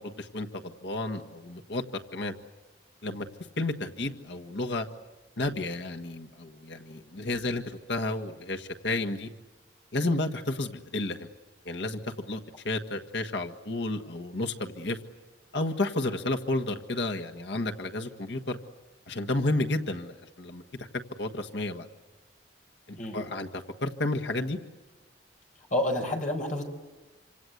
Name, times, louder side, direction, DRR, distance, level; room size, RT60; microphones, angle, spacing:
voice 1, 0.0-2.3 3.0-3.3 3.6-4.9 5.4-9.3 9.9-11.3 11.6-15.0 15.5-18.6 19.1-20.6 21.2-21.9 22.9-24.6, left 2 dB, 75° left, 4 dB, 1.6 m, -31 dB
voice 2, 25.7-26.6, left 1 dB, 45° left, 4 dB, 4.8 m, -29 dB
27.5 x 26.0 x 8.0 m, 1.2 s
head